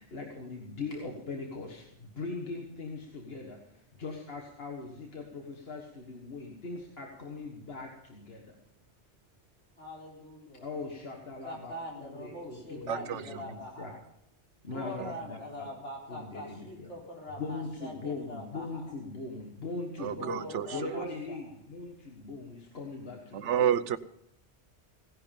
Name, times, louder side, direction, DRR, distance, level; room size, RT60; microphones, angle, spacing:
voice 1, 0.0-8.5 10.6-13.9 14.6-15.7 16.1-16.9 17.4-20.4 20.7-23.5, left 3 dB, 60° left, 1 dB, 1.8 m, -40 dB
voice 2, 9.8-10.6 11.3-14.0 14.7-18.9 20.2-21.4, left 1 dB, 90° left, -2 dB, 4.0 m, -43 dB
voice 3, 12.9-13.4 15.0-15.1 20.0-21.1 23.3-24.0, right 9 dB, 85° right, 15 dB, 1.0 m, -30 dB
17.0 x 11.0 x 5.3 m, 0.80 s
omnidirectional pair, 1.2 m